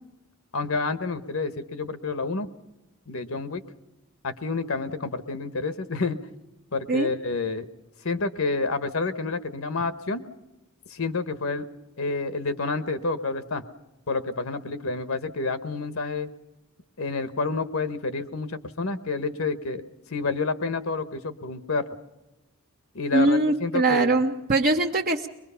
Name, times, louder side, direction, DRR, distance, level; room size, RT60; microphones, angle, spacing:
voice 1, 0.5-2.5 3.1-3.6 4.2-6.2 6.7-7.6 8.0-10.2 10.9-11.7 12.0-13.6 14.1-16.3 17.0-19.8 20.1-21.8 22.9-24.1, left 3 dB, 70° left, 12 dB, 1.1 m, -29 dB
voice 2, 23.1-25.3, right 2 dB, 45° right, 0 dB, 0.9 m, -22 dB
22.5 x 21.5 x 5.7 m, 1.0 s
head